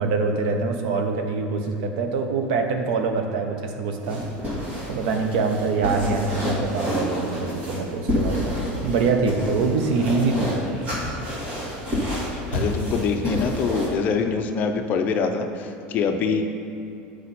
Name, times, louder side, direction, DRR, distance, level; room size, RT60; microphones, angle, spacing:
voice 1, 0.0-4.2 4.5-8.6 8.8-10.5, right 4 dB, 70° right, 5 dB, 0.8 m, -24 dB
sound 1, 4.0-13.9, equal, 35° right, 1.7 m, -29 dB
voice 2, 12.5-16.4, left 5 dB, 40° left, 6 dB, 0.5 m, -24 dB
7.9 x 4.9 x 4.2 m, 2.7 s
supercardioid pair, 145°, 5 cm